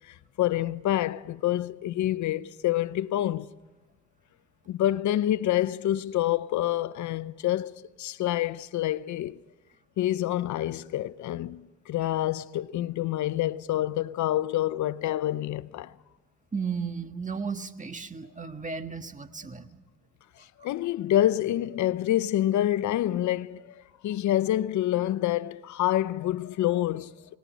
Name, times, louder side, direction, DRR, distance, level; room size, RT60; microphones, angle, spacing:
voice 1, 0.1-3.5 4.7-9.4 10.0-15.9 20.6-27.1, left 13 dB, 70° left, 0.7 m, -27 dB
voice 2, 16.5-19.7, right 5 dB, 25° right, 1.6 m, -34 dB
29.5 x 19.0 x 5.2 m
cardioid pair, 90°, 30 cm